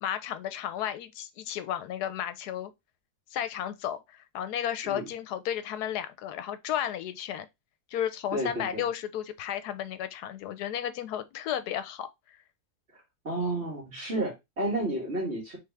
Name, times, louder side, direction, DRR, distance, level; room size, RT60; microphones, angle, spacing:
voice 1, 0.0-2.7 3.3-7.5 7.9-12.1, left 10 dB, 85° left, 1.1 m, -33 dB
voice 2, 8.3-8.9 13.2-15.6, right 1 dB, 40° right, 2.4 m, -31 dB
3.9 x 3.4 x 3.3 m
omnidirectional pair, 1.7 m